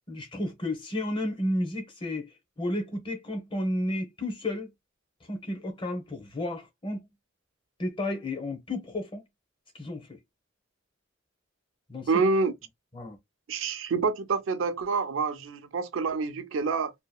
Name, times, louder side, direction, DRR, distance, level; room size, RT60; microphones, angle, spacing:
voice 1, 0.1-4.7 5.3-7.1 7.8-9.2 9.7-10.2 11.9-12.1 12.9-13.2, left 1 dB, 25° left, 0.8 m, -32 dB
voice 2, 12.1-12.5 13.5-16.9, right 4 dB, 75° right, 0.5 m, -27 dB
2.8 x 2.2 x 2.2 m
head